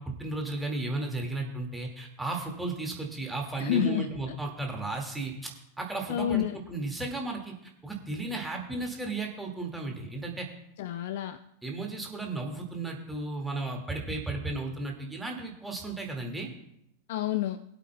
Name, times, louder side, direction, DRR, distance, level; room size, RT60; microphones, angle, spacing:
voice 1, 0.0-7.5 7.8-10.5 11.6-16.5, right 2 dB, 5° right, 1 dB, 1.9 m, -34 dB
voice 2, 3.6-4.4 6.1-6.6 10.8-11.4 17.1-17.6, left 12 dB, 55° left, 13 dB, 0.4 m, -29 dB
21.5 x 8.4 x 2.2 m, 0.79 s
figure-of-eight pair, 90°, 0 cm